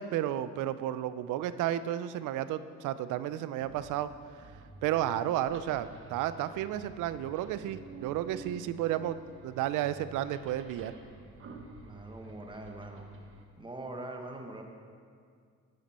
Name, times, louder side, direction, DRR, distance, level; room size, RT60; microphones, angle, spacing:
voice 1, 0.0-4.1 4.8-10.9, right 12 dB, 90° right, 14 dB, 0.5 m, -32 dB
sound 1, 3.6-13.5, right 3 dB, 45° right, 1.1 m, -50 dB
voice 2, 11.8-13.1 13.6-14.6, right 2 dB, 15° right, 3 dB, 1.2 m, -43 dB
9.4 x 9.3 x 4.2 m, 2.2 s
cardioid pair, 90°, 30 cm